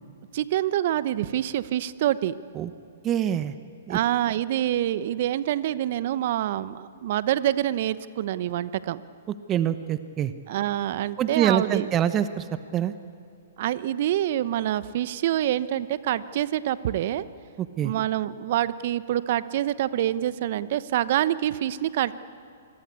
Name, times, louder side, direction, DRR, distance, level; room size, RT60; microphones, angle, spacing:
voice 1, 0.3-2.3 3.9-9.0 10.5-11.9 13.6-17.2 17.8-22.1, right 12 dB, 55° right, 15 dB, 1.0 m, -26 dB
voice 2, 3.0-3.5 3.9-4.0 9.3-10.3 11.2-12.5 12.7-12.9 17.6-17.9, right 10 dB, 25° right, 12 dB, 1.0 m, -25 dB
27.0 x 22.0 x 8.5 m, 2.6 s
hypercardioid pair, 120°, 0 cm